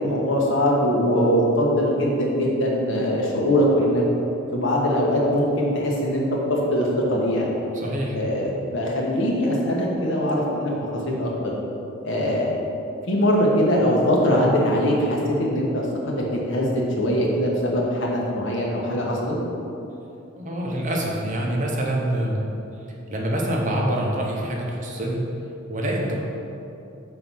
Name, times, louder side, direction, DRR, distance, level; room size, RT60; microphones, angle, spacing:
voice 1, 0.0-4.0 4.5-7.5 8.1-11.5 12.0-12.5 13.1-19.4, equal, 65° left, -3 dB, 1.2 m, -22 dB
voice 2, 7.7-8.2 20.4-22.4 23.1-25.3 25.7-26.2, right 1 dB, 40° right, -2 dB, 0.9 m, -25 dB
5.4 x 4.0 x 6.0 m, 2.8 s
head